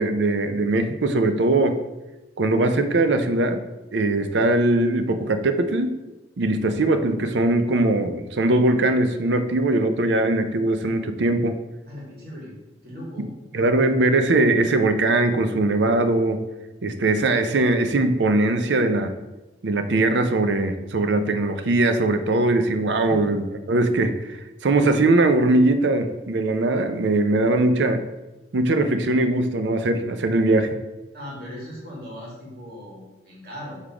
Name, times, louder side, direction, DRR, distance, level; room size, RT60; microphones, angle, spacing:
voice 1, 0.0-1.8 2.4-3.6 3.9-6.0 6.4-11.6 13.5-16.4 16.8-19.1 19.6-28.0 28.5-30.8, right 2 dB, 80° right, 9 dB, 0.5 m, -21 dB
voice 2, 11.9-12.5 12.8-13.3 23.0-23.3 31.1-33.8, equal, 60° right, -5 dB, 2.2 m, -38 dB
6.5 x 3.6 x 4.9 m, 1.1 s
head